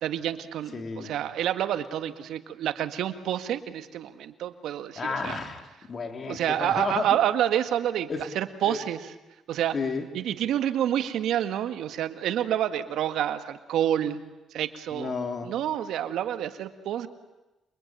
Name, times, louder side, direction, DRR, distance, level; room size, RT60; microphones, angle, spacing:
voice 1, 0.0-5.4 6.3-9.0 9.5-9.8 10.1-14.2 14.5-15.1 15.4-17.1, right 11 dB, 80° right, 9 dB, 1.8 m, -28 dB
voice 2, 0.7-1.1 5.0-7.1 8.1-8.2 8.6-8.8 9.7-10.1 14.9-15.5, left 4 dB, 40° left, 5 dB, 3.6 m, -32 dB
28.0 x 23.5 x 9.2 m, 1.0 s
cardioid pair, 90°, 0 cm